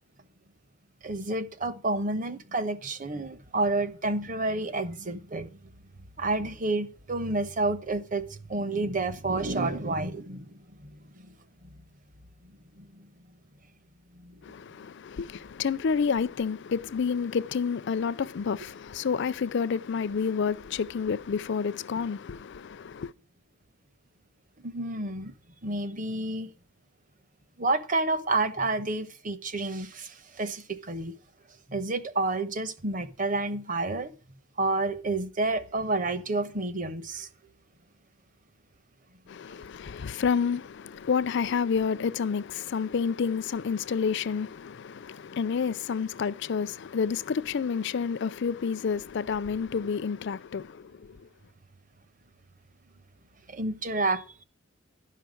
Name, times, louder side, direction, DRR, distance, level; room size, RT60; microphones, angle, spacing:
voice 1, 1.0-5.5 6.2-10.5 12.8-12.9 14.2-14.3 24.6-25.3 25.6-26.5 27.6-31.1 31.7-34.1 34.6-37.3 53.5-54.4, right 2 dB, 40° right, 1.0 m, -29 dB
voice 2, 14.4-23.1 39.3-50.9, left 6 dB, 55° left, 0.4 m, -29 dB
11.5 x 5.7 x 7.7 m
head